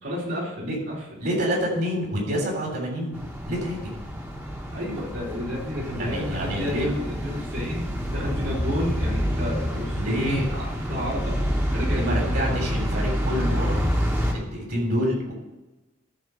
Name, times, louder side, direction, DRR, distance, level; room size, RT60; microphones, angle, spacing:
voice 1, 0.0-1.2 4.7-11.4 11.7-12.8 14.5-14.7, left 1 dB, 70° right, -5 dB, 3.8 m, -32 dB
voice 2, 1.2-3.2 3.5-3.9 6.0-6.9 9.9-10.5 11.9-13.8 14.3-15.3, equal, 55° right, -1 dB, 3.3 m, -27 dB
sound 1, 3.1-14.3, equal, 10° right, 1.3 m, -27 dB
13.0 x 4.3 x 6.4 m, 1.1 s
head